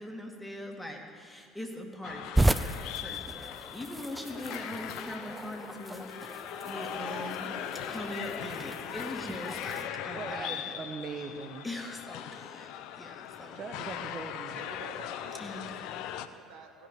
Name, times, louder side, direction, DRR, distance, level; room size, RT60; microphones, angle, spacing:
voice 1, 0.0-7.6 7.9-10.8 11.6-12.7 13.0-13.5 15.4-15.7, left 1 dB, 5° left, 1 dB, 2.2 m, -41 dB
sound 1, 2.0-16.3, left 11 dB, 65° left, 0.6 m, -40 dB
sound 2, 2.3-9.9, right 2 dB, 10° right, 0.4 m, -34 dB
voice 2, 10.1-11.7 13.0-13.2 13.5-14.7, right 5 dB, 45° right, 5 dB, 0.9 m, -41 dB
voice 3, 14.5-16.9, right 5 dB, 70° right, 5 dB, 1.2 m, -50 dB
16.0 x 6.2 x 9.0 m, 2.1 s
hypercardioid pair, 60°, 0 cm